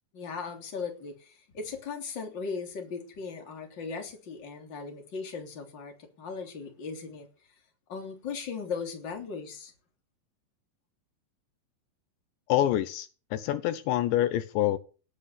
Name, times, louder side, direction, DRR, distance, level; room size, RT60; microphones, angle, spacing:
voice 1, 0.1-7.3 7.9-9.7, left 5 dB, 25° left, 3.2 m, -38 dB
voice 2, 12.5-14.8, left 13 dB, 80° left, 3.1 m, -26 dB
18.0 x 8.6 x 6.7 m
omnidirectional pair, 5.3 m